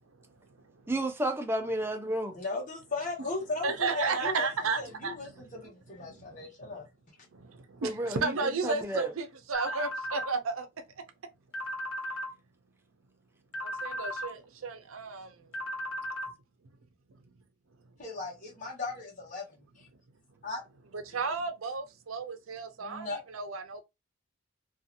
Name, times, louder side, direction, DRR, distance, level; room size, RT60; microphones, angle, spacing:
voice 1, 0.9-2.4 7.8-9.1, right 1 dB, 10° right, 0.4 m, -32 dB
voice 2, 2.3-4.5 4.8-6.9 18.0-19.9 20.4-20.6 21.1-21.3 22.8-23.2, left 3 dB, 40° left, 1.2 m, -37 dB
voice 3, 3.6-5.4 6.0-6.7 7.3-10.7 13.6-15.5 20.9-23.8, right 4 dB, 85° right, 0.6 m, -33 dB
sound 1, 9.5-10.3 11.5-12.3 13.5-14.3 15.5-16.3, equal, 85° left, 1.0 m, -36 dB
2.7 x 2.4 x 2.5 m
head